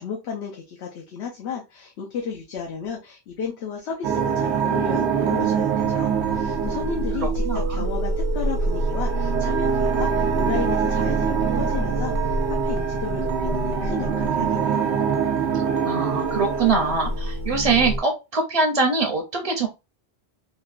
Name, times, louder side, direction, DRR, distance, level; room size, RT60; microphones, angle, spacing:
voice 1, 0.0-14.8, left 6 dB, 80° left, -1 dB, 1.0 m, -33 dB
sound 1, 4.0-18.0, right 5 dB, 90° right, 0.9 m, -24 dB
voice 2, 7.2-7.9 15.8-19.7, right 4 dB, 40° right, 2 dB, 0.6 m, -23 dB
3.6 x 2.2 x 2.4 m, 0.25 s
omnidirectional pair, 1.1 m